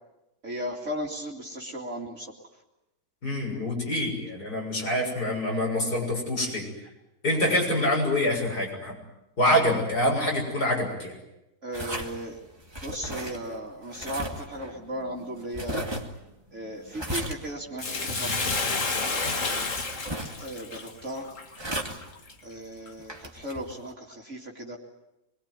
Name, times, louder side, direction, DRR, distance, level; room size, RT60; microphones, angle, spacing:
voice 1, 0.4-2.3 11.6-12.4 12.8-15.9 16.5-18.3 20.4-21.3 22.4-24.8, equal, 50° right, -1 dB, 2.8 m, -36 dB
voice 2, 3.2-6.7 7.2-8.9 9.4-11.1, left 1 dB, 80° left, 0 dB, 7.6 m, -26 dB
sound 1, 11.7-23.9, equal, 15° right, 2.4 m, -38 dB
Bathtub (filling or washing), 17.8-22.3 22.9-23.0, left 3 dB, 55° left, 2.3 m, -30 dB
24.5 x 22.5 x 9.6 m, 0.92 s
omnidirectional pair, 1.7 m